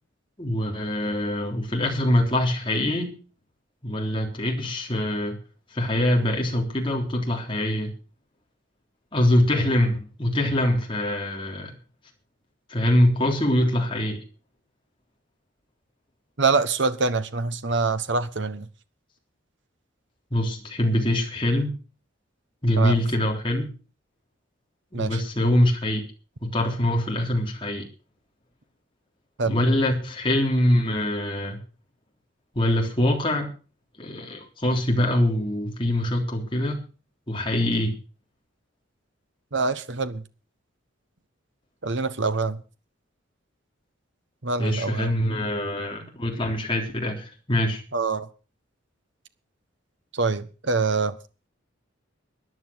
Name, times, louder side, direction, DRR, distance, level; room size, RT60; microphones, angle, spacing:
voice 1, 0.4-3.1 3.8-5.4 5.7-7.9 9.1-11.7 12.7-14.2 20.3-21.8 22.6-23.7 24.9-26.0 26.4-27.9 29.5-31.6 32.5-33.5 34.0-36.8 37.3-37.9 44.6-47.8, left 1 dB, 25° left, 3.5 m, -24 dB
voice 2, 16.4-18.7 22.8-23.0 24.9-25.2 29.4-29.6 39.5-40.2 41.8-42.6 44.4-45.1 47.9-48.3 50.1-51.2, right 4 dB, 60° right, 1.1 m, -25 dB
14.0 x 10.0 x 6.3 m
head